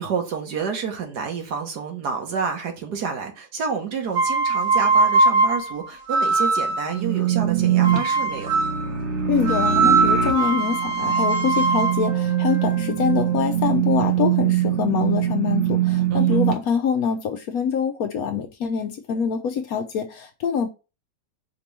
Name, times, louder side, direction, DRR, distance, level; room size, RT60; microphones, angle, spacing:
voice 1, 0.0-8.5 16.1-16.4, right 6 dB, 70° right, 1.6 m, -29 dB
sound 1, 4.1-6.9 7.8-8.8 9.4-13.4, right 3 dB, 85° right, 2.7 m, -21 dB
sound 2, 6.9-16.5, right 11 dB, 45° right, 1.2 m, -23 dB
voice 2, 9.3-20.7, left 7 dB, 70° left, 1.0 m, -25 dB
5.1 x 2.9 x 3.3 m
omnidirectional pair, 1.9 m